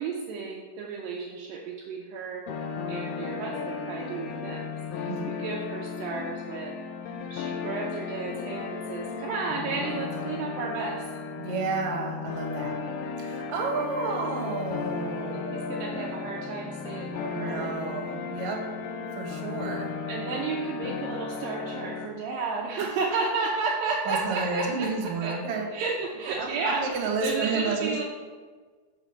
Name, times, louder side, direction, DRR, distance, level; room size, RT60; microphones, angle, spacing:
voice 1, 0.0-4.6 4.9-6.8 7.3-11.0 15.3-17.8 20.1-25.4 25.7-28.0, right 4 dB, 75° right, -2 dB, 2.3 m, -33 dB
sound 1, 2.5-22.1, left 5 dB, 85° left, 2.6 m, -35 dB
voice 2, 5.1-5.4 11.4-12.8 13.2-16.4 17.3-18.6 19.0-19.9 22.8-23.2 24.1-25.7 26.3-28.0, right 4 dB, 60° right, 0 dB, 2.2 m, -31 dB
7.1 x 5.0 x 5.6 m, 1.5 s
omnidirectional pair, 4.4 m